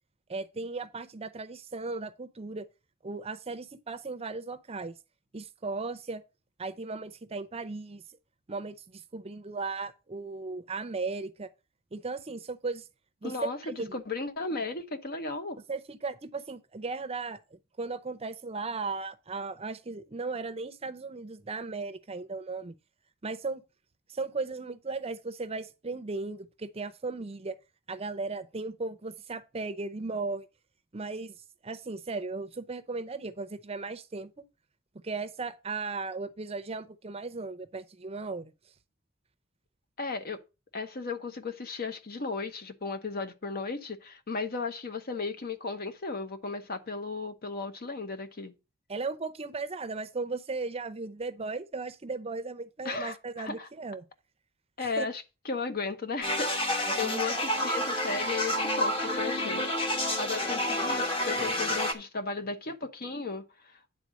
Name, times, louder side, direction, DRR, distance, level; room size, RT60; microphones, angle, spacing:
voice 1, 0.3-2.7 3.0-4.9 5.3-6.2 6.6-8.0 8.5-11.5 11.9-12.8 13.2-14.0 15.7-17.4 17.8-22.7 23.2-23.6 24.1-27.6 27.9-30.5 30.9-31.3 31.6-34.4 35.0-38.5 48.9-54.0 54.8-55.1 56.8-57.6, right 3 dB, 30° right, 0.6 m, -36 dB
voice 2, 13.2-15.6 40.0-40.4 40.7-48.5 52.8-53.7 54.8-59.6 60.2-63.8, left 4 dB, 50° left, 1.0 m, -35 dB
sound 1, 56.2-61.9, left 1 dB, 30° left, 1.2 m, -29 dB
9.6 x 3.7 x 6.3 m
head